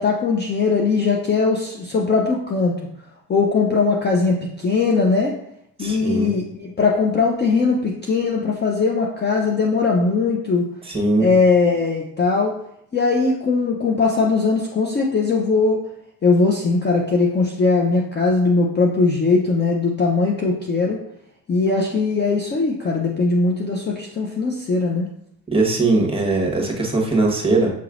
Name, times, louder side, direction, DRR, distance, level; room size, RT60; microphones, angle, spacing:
voice 1, 0.0-2.7 3.3-5.3 5.8-10.6 11.2-12.5 12.9-15.8 16.2-21.0 21.5-25.1, left 4 dB, 25° left, -1 dB, 0.6 m, -20 dB
voice 2, 5.8-6.3 10.8-11.3 25.5-27.7, right 2 dB, 10° right, 0 dB, 1.3 m, -20 dB
6.8 x 3.1 x 2.5 m, 0.75 s
supercardioid pair, 75°, 45 cm